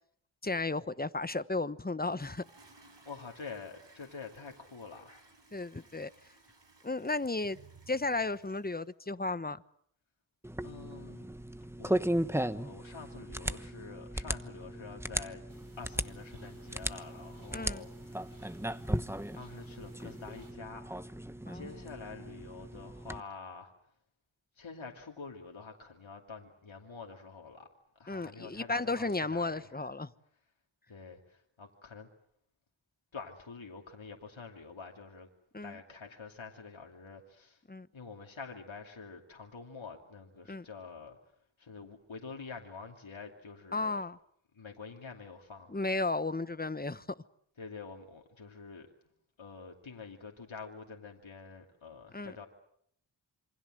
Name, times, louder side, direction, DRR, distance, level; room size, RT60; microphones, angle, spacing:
voice 1, 0.4-2.4 5.5-6.1 6.8-7.6 7.9-9.6 17.5-17.8 21.5-21.8 28.1-30.1 35.5-35.8 37.7-37.9 40.5-40.6 43.7-44.2 45.7-47.0 52.1-52.4, left 3 dB, 20° left, 1.1 m, -34 dB
Toilet flush, 2.0-8.9, right 3 dB, 65° right, 5.5 m, -60 dB
voice 2, 3.0-5.4 10.6-11.3 11.8-12.0 12.5-15.4 15.8-18.3 19.3-21.1 21.5-23.7 24.6-27.7 27.9-29.9 30.9-32.1 33.1-35.3 35.6-37.6 37.9-41.2 41.6-44.0 44.5-45.7 47.6-48.9 49.4-52.5, left 4 dB, 85° left, 2.8 m, -47 dB
sound 1, 10.4-23.2, right 1 dB, 5° right, 1.1 m, -37 dB
sound 2, 15.5-20.5, right 2 dB, 45° right, 7.0 m, -60 dB
27.5 x 24.5 x 7.8 m
wide cardioid pair, 55°, 46 cm